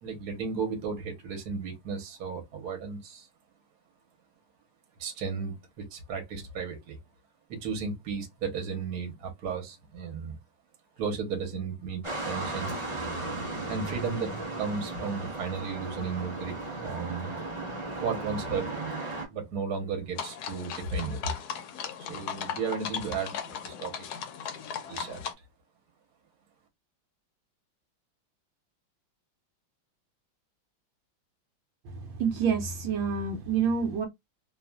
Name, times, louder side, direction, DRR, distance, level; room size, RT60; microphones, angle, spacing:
voice 1, 0.0-3.3 5.0-7.0 7.5-10.3 11.0-12.8 13.7-14.3 14.6-16.6 16.8-17.3 18.0-18.9 19.3-21.3 22.1-24.1 24.9-25.2, right 5 dB, 60° right, 1.4 m, -34 dB
sound 1, 12.0-19.2, right 2 dB, 25° right, 0.7 m, -35 dB
sound 2, 20.2-25.3, left 7 dB, 75° left, 0.9 m, -37 dB
voice 2, 31.8-34.1, right 6 dB, 80° right, 1.4 m, -28 dB
3.2 x 2.4 x 2.3 m
omnidirectional pair, 2.2 m